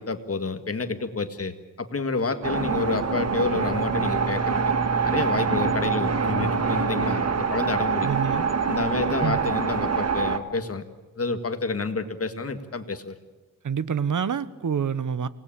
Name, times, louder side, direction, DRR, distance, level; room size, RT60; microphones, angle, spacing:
voice 1, 0.0-4.7 5.0-8.1 8.7-10.8 11.2-13.2, left 3 dB, 45° left, 9 dB, 1.9 m, -29 dB
sound 1, 2.4-10.4, right 5 dB, 50° right, 1.7 m, -25 dB
voice 2, 8.0-8.5 9.2-9.5 13.6-15.3, right 7 dB, 65° right, 16 dB, 1.1 m, -27 dB
26.5 x 19.0 x 8.8 m, 1.2 s
wide cardioid pair, 130°, 33 cm